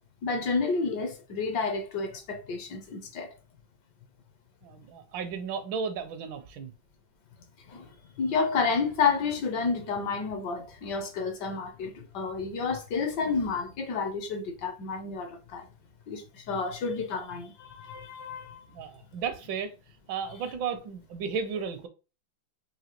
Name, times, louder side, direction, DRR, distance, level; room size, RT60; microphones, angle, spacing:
voice 1, 0.2-3.3 7.7-7.9 8.2-15.7 16.1-18.6, left 4 dB, 65° left, 1.2 m, -30 dB
voice 2, 4.6-6.7 18.7-19.7 20.1-21.9, right 6 dB, 75° right, 1.3 m, -34 dB
4.8 x 2.7 x 2.9 m
omnidirectional pair, 2.2 m